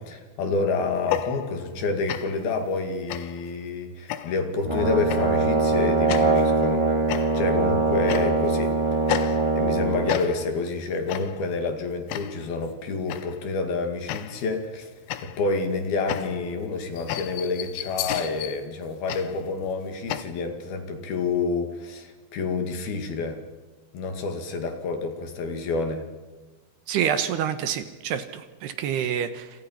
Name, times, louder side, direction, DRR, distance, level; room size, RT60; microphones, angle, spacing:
voice 1, 0.0-6.9 7.3-8.7 9.2-14.9 15.2-23.4 23.9-26.1, left 4 dB, 60° left, 6 dB, 3.9 m, -28 dB
sound 1, 1.0-1.8 2.1-2.5 3.1-3.5 4.1-4.5 5.1-5.4 6.1-6.5 7.1-7.6 8.1-8.6 9.1-9.8 10.1-10.6 11.1-11.5 12.1-12.5 13.1-13.5 14.1-14.6 15.1-20.2, left 12 dB, 85° left, 3.5 m, -33 dB
Brass instrument, 4.6-10.1, right 3 dB, 10° right, 1.8 m, -22 dB
voice 2, 26.9-29.5, right 9 dB, 70° right, 10 dB, 3.1 m, -27 dB
29.0 x 27.0 x 5.8 m, 1.3 s
omnidirectional pair, 5.3 m